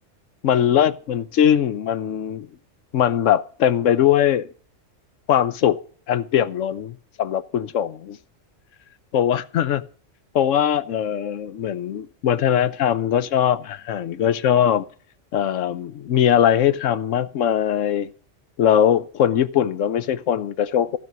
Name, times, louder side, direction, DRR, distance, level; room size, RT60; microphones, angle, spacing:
voice 1, 0.4-2.5 2.9-4.5 5.3-5.8 6.1-8.2 9.1-9.8 10.3-14.9 15.3-18.1 18.6-21.0, left 10 dB, 75° left, 1.1 m, -20 dB
15.0 x 6.1 x 6.7 m
omnidirectional pair, 1.3 m